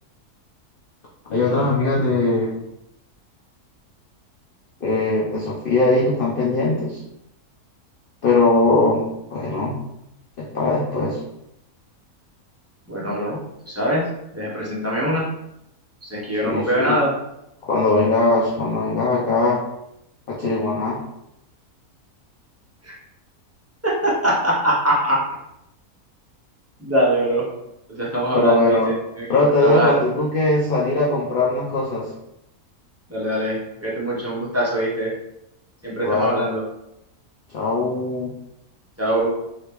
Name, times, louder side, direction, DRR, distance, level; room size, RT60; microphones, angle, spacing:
voice 1, 1.3-2.6 4.8-7.0 8.2-9.8 10.4-11.2 16.3-17.0 17.6-19.7 20.3-21.0 28.3-28.9 29.3-32.1 36.0-36.4 37.5-38.4, left 2 dB, 65° left, -4 dB, 0.5 m, -20 dB
voice 2, 12.9-13.4 13.7-14.0 14.3-15.2 16.0-17.1 22.8-23.0 23.8-25.2 26.8-27.5 27.9-29.3 29.6-30.0 33.1-35.1 35.8-36.6 39.0-39.3, right 1 dB, 20° right, -6 dB, 0.4 m, -22 dB
3.3 x 2.8 x 2.9 m, 0.84 s
omnidirectional pair, 1.6 m